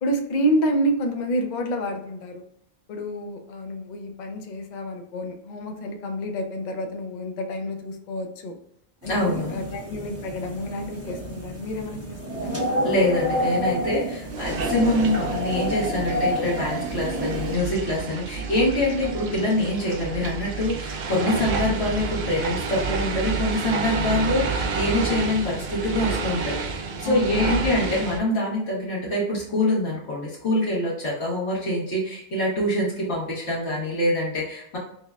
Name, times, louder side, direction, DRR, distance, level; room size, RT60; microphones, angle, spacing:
voice 1, 0.0-2.4 2.9-8.6 9.0-12.9 27.0-27.7, equal, 50° left, 4 dB, 0.6 m, -29 dB
sound 1, 9.0-17.6, equal, 15° right, 0.7 m, -29 dB
voice 2, 9.1-9.6 12.8-34.8, left 1 dB, 90° left, -7 dB, 1.4 m, -25 dB
sound 2, 14.3-28.2, right 4 dB, 55° right, 0.6 m, -30 dB
5.4 x 2.1 x 2.3 m, 0.73 s
omnidirectional pair, 1.1 m